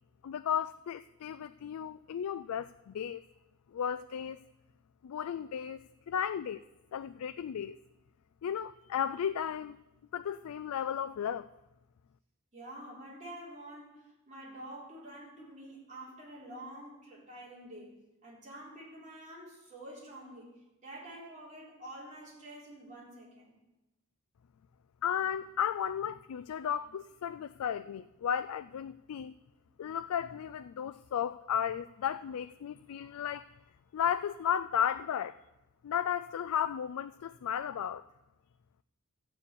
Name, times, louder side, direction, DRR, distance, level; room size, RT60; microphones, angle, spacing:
voice 1, 0.2-3.2 3.7-4.4 5.0-5.8 6.1-6.6 6.9-7.8 8.4-9.8 10.1-11.5 25.0-29.3 29.8-33.4 33.9-35.4 35.8-38.0, left 8 dB, 80° left, 11 dB, 0.3 m, -34 dB
voice 2, 12.5-23.5, right 1 dB, 35° right, -5 dB, 3.9 m, -48 dB
13.5 x 4.8 x 8.4 m, 0.98 s
head